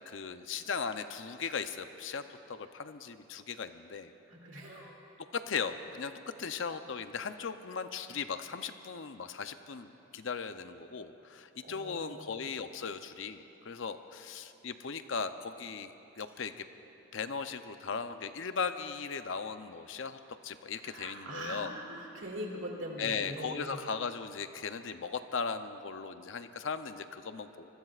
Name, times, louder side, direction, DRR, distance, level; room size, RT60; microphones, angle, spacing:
voice 1, 0.1-2.2 2.5-4.1 5.3-6.1 6.4-16.7 17.1-21.8 23.0-27.7, left 5 dB, 60° left, 9 dB, 0.6 m, -38 dB
voice 2, 4.4-4.9 11.6-12.3 20.8-23.8, right 1 dB, 60° right, -1 dB, 2.5 m, -42 dB
25.0 x 20.5 x 2.5 m, 2.9 s
head